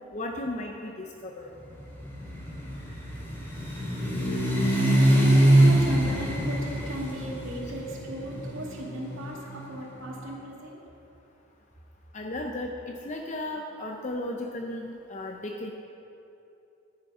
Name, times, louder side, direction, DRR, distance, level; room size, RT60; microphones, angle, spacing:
voice 1, 0.1-1.5 5.6-5.7 12.1-15.7, left 1 dB, 35° left, 2 dB, 0.6 m, -35 dB
sound 1, 1.8-9.8, right 1 dB, 10° left, 2.4 m, -24 dB
voice 2, 5.0-10.8, right 1 dB, 80° right, -3 dB, 2.2 m, -37 dB
10.5 x 9.8 x 5.5 m, 2.8 s
head